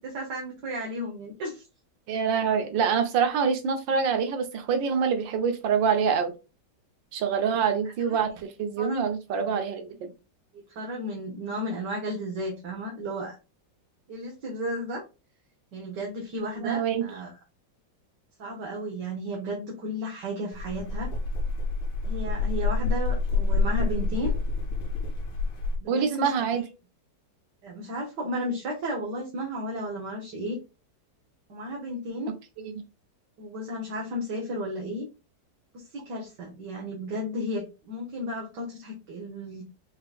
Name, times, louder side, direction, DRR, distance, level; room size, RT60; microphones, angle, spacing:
voice 1, 0.0-1.6 7.5-7.6 8.0-8.2 8.8-9.0 9.3-9.5 10.5-13.3 14.1-15.0 15.7-17.3 18.4-21.1 22.1-24.3 25.8-26.6 27.6-30.6 31.5-32.3 33.4-35.1 35.7-39.6, equal, 70° right, -2 dB, 1.9 m, -34 dB
voice 2, 2.1-6.3 7.1-10.1 16.6-17.0 25.9-26.6 32.3-32.7, right 6 dB, 90° right, 7 dB, 1.7 m, -26 dB
sound 1, 20.5-25.8, left 3 dB, 75° left, 1.8 m, -27 dB
5.5 x 3.7 x 2.4 m, 0.29 s
omnidirectional pair, 2.0 m